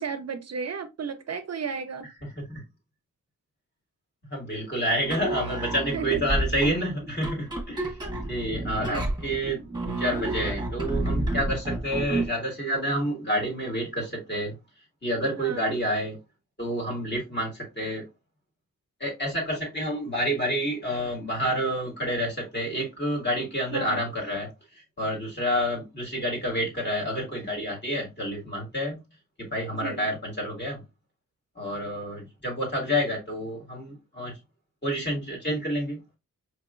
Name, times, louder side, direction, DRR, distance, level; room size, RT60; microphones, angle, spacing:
voice 1, 0.0-2.1 5.9-6.2 8.9-9.1 15.3-15.7 23.7-24.0 29.7-30.1, right 6 dB, 55° right, 0.4 m, -33 dB
voice 2, 2.2-2.6 4.3-7.9 8.3-14.5 15.0-16.2 16.6-18.0 19.0-24.5 25.0-29.0 29.4-30.8 31.6-34.3 34.8-36.0, equal, 35° left, 1.9 m, -29 dB
sound 1, 5.0-12.4, right 1 dB, 15° right, 1.1 m, -30 dB
4.9 x 2.9 x 2.4 m
wide cardioid pair, 115°, 32 cm